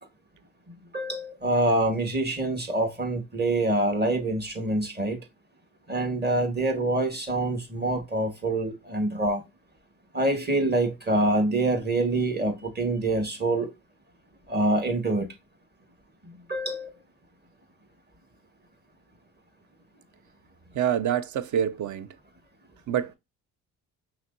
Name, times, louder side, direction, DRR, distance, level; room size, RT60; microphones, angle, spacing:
voice 1, 0.9-5.2 5.9-9.4 10.1-13.7 14.5-15.3 16.2-16.9, right 2 dB, 25° right, 1.5 m, -26 dB
voice 2, 20.7-22.1 22.9-23.1, right 9 dB, 45° right, 0.6 m, -26 dB
5.6 x 2.9 x 2.6 m
hypercardioid pair, 60°, 42 cm